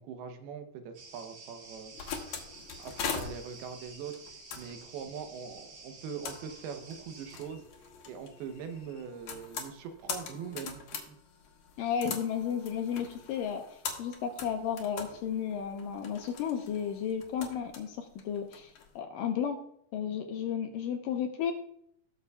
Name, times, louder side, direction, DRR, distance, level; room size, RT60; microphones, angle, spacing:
voice 1, 0.0-2.1 2.6-4.1 4.6-7.7 8.1-11.2, right 6 dB, 80° right, 7 dB, 2.8 m, -42 dB
sound 1, 0.9-7.4, right 3 dB, 50° right, 3.1 m, -51 dB
sound 2, 1.7-18.9, left 6 dB, 60° left, 2.2 m, -43 dB
voice 2, 11.8-19.6 19.9-21.5, left 8 dB, 75° left, 5 dB, 2.1 m, -33 dB
19.0 x 7.0 x 2.3 m, 0.70 s
omnidirectional pair, 4.5 m